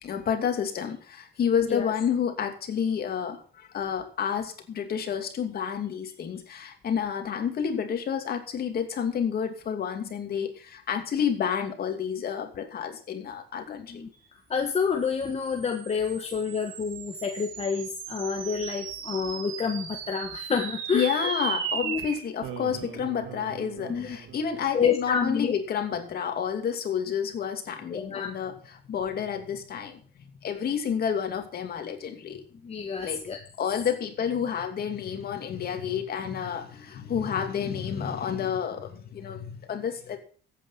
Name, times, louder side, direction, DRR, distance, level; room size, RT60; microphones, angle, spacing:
voice 1, 0.0-14.0 20.9-30.0 30.4-32.4 33.0-33.2 33.6-40.2, left 7 dB, 50° left, 5 dB, 2.7 m, -30 dB
voice 2, 13.7-14.1 14.5-21.1 21.8-22.0 23.9-24.2 24.7-25.5 27.9-28.3 32.6-33.4, left 6 dB, 30° left, 3 dB, 1.4 m, -28 dB
sound 1, 15.0-25.6, right 8 dB, 80° right, 2.4 m, -38 dB
14.0 x 8.9 x 5.9 m, 0.44 s
cardioid pair, 125°, 21 cm